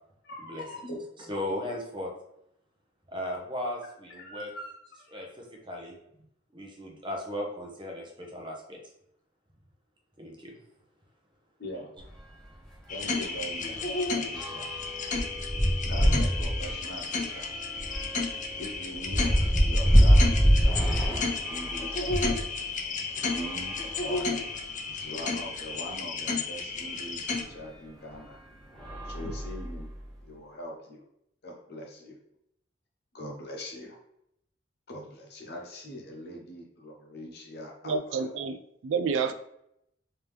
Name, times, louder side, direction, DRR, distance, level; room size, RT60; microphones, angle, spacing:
voice 1, 0.2-1.0 4.1-5.2 11.6-11.9 12.9-13.9 14.3-14.7 15.8-17.5 18.5-19.3 19.6-22.1 22.8-23.0 23.3-24.4 24.8-28.4 29.0-29.9 30.2-31.1 31.4-32.2 33.1-34.0 34.9-38.2, equal, 60° left, 1 dB, 0.8 m, -42 dB
voice 2, 1.3-2.1 3.1-4.5 5.1-5.9 6.5-8.8 10.2-10.6, left 1 dB, 25° right, 0 dB, 0.8 m, -36 dB
sound 1, 12.0-12.2 12.5-12.7 13.0-22.5 23.2-24.5 25.2-25.3 25.5-25.6 27.3-27.4 28.1-28.4 28.7-30.0, equal, 5° left, 0.8 m, -26 dB
sound 2, 12.9-27.4, left 4 dB, 40° left, 0.4 m, -33 dB
voice 3, 37.9-39.3, right 5 dB, 90° right, 10 dB, 0.3 m, -29 dB
3.4 x 2.9 x 3.4 m, 0.77 s
head